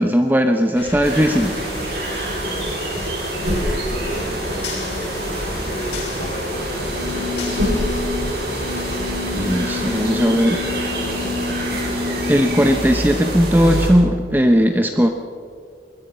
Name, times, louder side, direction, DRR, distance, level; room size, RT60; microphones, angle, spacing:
voice 1, 0.0-1.6 9.3-10.6 12.3-15.1, equal, 10° right, 5 dB, 0.8 m, -17 dB
sound 1, 0.8-10.1, left 2 dB, 75° left, 7.6 m, -34 dB
sound 2, 1.0-13.9, right 1 dB, 60° right, 5.7 m, -26 dB
voice 2, 3.4-8.8 10.3-11.4, left 1 dB, 30° left, 1 dB, 3.6 m, -35 dB
sound 3, 6.5-13.0, left 5 dB, 80° right, 4.6 m, -29 dB
23.5 x 20.5 x 5.6 m, 2.3 s
head